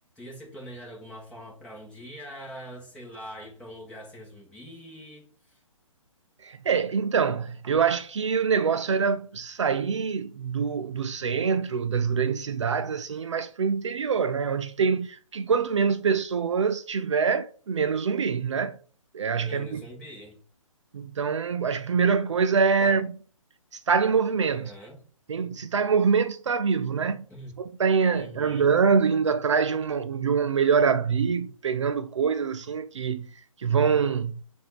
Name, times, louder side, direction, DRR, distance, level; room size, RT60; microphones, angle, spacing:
voice 1, 0.1-5.6 19.4-20.4 22.8-23.0 24.5-25.0 27.3-27.5 28.1-28.7, equal, 5° left, 1.5 m, -43 dB
voice 2, 6.4-18.8 19.1-19.8 20.9-23.1 23.7-24.7 25.3-27.2 27.6-33.3 33.6-34.4, right 6 dB, 60° right, 0.5 m, -25 dB
7.5 x 2.7 x 4.7 m
figure-of-eight pair, 140°, 17 cm